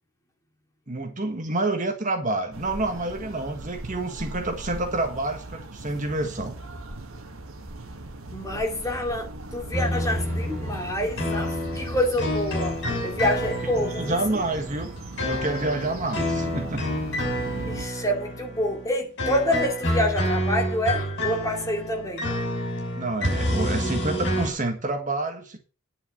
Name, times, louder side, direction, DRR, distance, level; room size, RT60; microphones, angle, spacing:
voice 1, 0.9-6.5 13.8-14.9 15.2-16.8 22.9-25.6, right 2 dB, 35° right, 1.6 m, -28 dB
sound 1, 2.5-17.8, right 2 dB, 70° right, 1.6 m, -39 dB
voice 2, 8.2-14.4 17.7-22.3, left 1 dB, 15° left, 2.6 m, -27 dB
sound 2, 9.7-24.5, equal, 55° left, 6.1 m, -28 dB
10.0 x 6.7 x 6.6 m
head